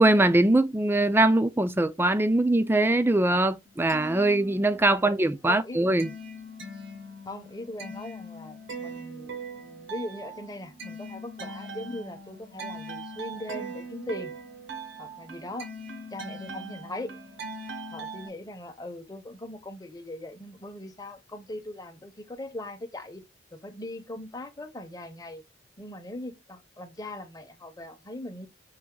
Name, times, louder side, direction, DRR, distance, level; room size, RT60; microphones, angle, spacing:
voice 1, 0.0-6.1, right 2 dB, 10° right, 0.4 m, -22 dB
sound 1, 3.7-5.1 5.4-18.3, right 2 dB, 85° right, 1.2 m, -41 dB
voice 2, 5.4-5.8 7.3-14.3 15.0-15.8 16.1-17.1 17.9-23.2 23.5-25.4 25.8-28.5, left 1 dB, 20° left, 0.7 m, -40 dB
5.6 x 2.6 x 3.7 m
head